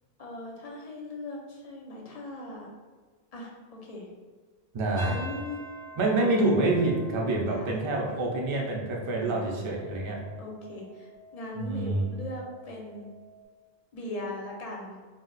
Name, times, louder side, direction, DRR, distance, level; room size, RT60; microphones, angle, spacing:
voice 1, 0.2-2.7 3.3-4.1 5.0-5.6 7.5-7.8 9.2-9.7 10.4-13.1 13.9-15.0, left 1 dB, 50° left, -1 dB, 0.5 m, -40 dB
voice 2, 4.7-5.2 6.0-10.2 11.6-12.1, right 2 dB, 45° right, -1 dB, 0.4 m, -27 dB
sound 1, 4.9-13.4, right 2 dB, 85° left, 0.8 m, -48 dB
2.4 x 2.1 x 3.8 m, 1.5 s
omnidirectional pair, 1.1 m